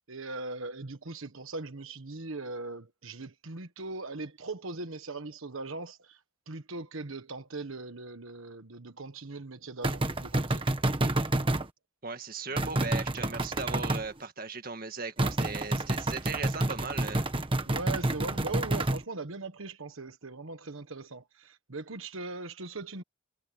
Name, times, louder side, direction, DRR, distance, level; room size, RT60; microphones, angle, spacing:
voice 1, 0.0-6.2 6.5-10.6 12.5-12.6 17.6-23.0, right 3 dB, 80° right, 1.4 m, -40 dB
sound 1, 9.8-11.7 12.6-14.1 15.2-19.0, right 1 dB, 25° right, 1.4 m, -29 dB
voice 2, 12.0-17.3, right 4 dB, 45° right, 1.9 m, -38 dB
head